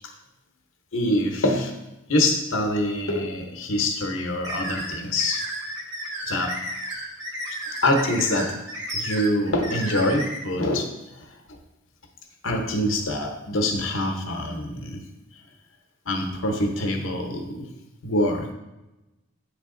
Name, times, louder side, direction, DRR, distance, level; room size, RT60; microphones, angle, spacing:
voice 1, 0.9-1.7 2.1-5.5 6.3-6.6 7.5-8.5 8.9-10.9 12.4-15.0 16.1-17.7 18.0-18.5, left 1 dB, 75° left, 3 dB, 0.9 m, -25 dB
sound 1, 4.4-10.4, right 1 dB, 60° right, 1.3 m, -33 dB
9.5 x 3.4 x 3.7 m, 0.99 s
head